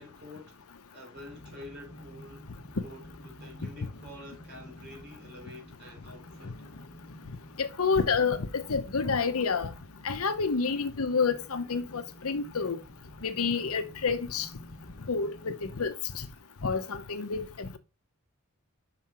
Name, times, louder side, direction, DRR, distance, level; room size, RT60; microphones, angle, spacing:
voice 1, 0.0-2.5 2.8-6.6, left 1 dB, 50° right, 3.6 m, -48 dB
sound 1, 1.1-15.9, left 1 dB, 45° left, 1.2 m, -50 dB
voice 2, 7.6-9.7 10.0-12.8 13.2-14.5 15.1-16.3 16.6-17.8, left 5 dB, 75° left, 0.9 m, -29 dB
5.9 x 5.6 x 4.3 m
head